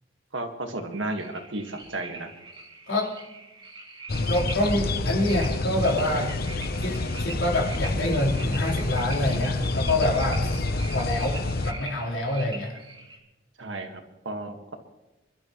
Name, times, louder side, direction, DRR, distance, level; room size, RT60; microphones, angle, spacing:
voice 1, 0.3-2.3 13.6-14.7, right 2 dB, 80° right, 5 dB, 1.9 m, -33 dB
sound 1, 1.2-13.2, right 3 dB, 25° right, 2.7 m, -43 dB
sound 2, 4.1-11.7, left 2 dB, 55° left, 0.8 m, -28 dB
voice 2, 4.3-6.3 6.8-10.5 10.9-12.8, left 1 dB, 85° left, -3 dB, 4.2 m, -26 dB
27.0 x 12.5 x 3.2 m, 1.0 s
head